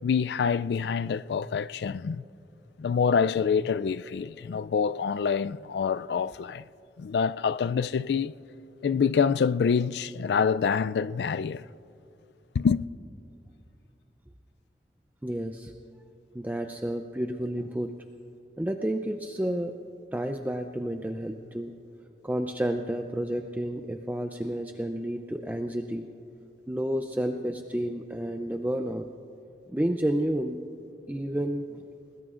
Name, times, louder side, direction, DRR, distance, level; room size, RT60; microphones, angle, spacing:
voice 1, 0.0-2.2 2.8-6.6 7.0-8.3 8.8-11.6 12.5-12.8, left 6 dB, 65° left, 0.3 m, -26 dB
voice 2, 15.2-15.7 16.3-17.9 18.6-19.7 20.1-21.7 22.2-26.1 26.7-29.0 29.7-30.6 31.1-31.8, right 1 dB, 10° right, 0.5 m, -30 dB
29.0 x 20.0 x 2.5 m
head